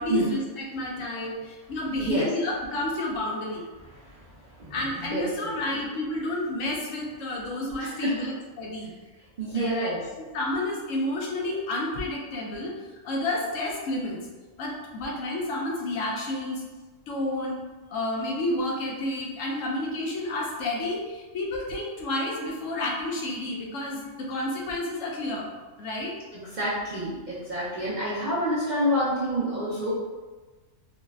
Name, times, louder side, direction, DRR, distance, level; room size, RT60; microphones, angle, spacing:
voice 1, 0.0-3.6 4.7-8.9 9.5-9.9 10.3-12.7 13.0-14.2 14.6-16.6 17.1-17.6 17.9-25.5 25.8-26.1, left 1 dB, 75° left, -2 dB, 1.0 m, -30 dB
voice 2, 3.9-4.3 4.6-5.8 7.8-8.3 9.4-10.0 26.3-29.9, right 1 dB, 45° right, -9 dB, 0.6 m, -28 dB
4.0 x 2.0 x 2.3 m, 1.3 s
omnidirectional pair, 1.4 m